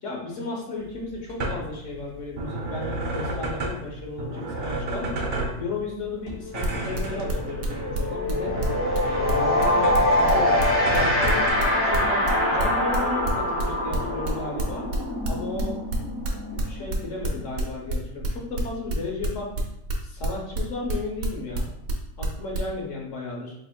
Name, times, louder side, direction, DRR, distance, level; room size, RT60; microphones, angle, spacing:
voice 1, 0.0-8.5 9.0-14.9 15.2-15.8 16.6-19.5 20.0-21.7 22.2-23.5, left 3 dB, 65° left, -2 dB, 1.4 m, -34 dB
sound 1, 0.8-11.5, right 1 dB, 55° right, 0.7 m, -32 dB
sound 2, 6.4-6.6 6.9-17.5, left 1 dB, 10° left, 1.1 m, -25 dB
sound 3, 6.4-22.7, right 4 dB, 85° right, 1.2 m, -29 dB
4.0 x 3.7 x 2.3 m, 0.76 s
omnidirectional pair, 1.4 m